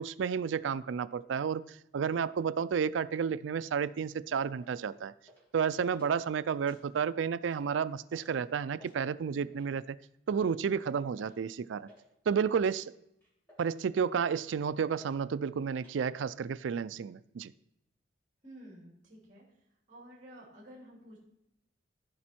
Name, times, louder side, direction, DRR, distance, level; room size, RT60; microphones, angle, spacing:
voice 1, 0.0-5.1 5.5-10.0 10.3-11.9 12.3-12.9 13.6-17.5, right 6 dB, 80° right, 15 dB, 0.4 m, -31 dB
sound 1, 4.6-4.8 5.3-5.6 5.9-6.1 6.5-7.1 7.4-7.6 8.1-8.3 8.6-9.0 9.5-9.8 10.4-10.6 11.2-11.4 11.6-12.1 12.6-12.8 13.2-13.8 14.3-14.6 15.0-15.2 15.4-16.0, left 1 dB, 10° left, 3.3 m, -58 dB
voice 2, 18.4-19.4 19.9-21.2, equal, 40° right, -5 dB, 2.8 m, -51 dB
15.5 x 5.2 x 4.3 m, 0.81 s
head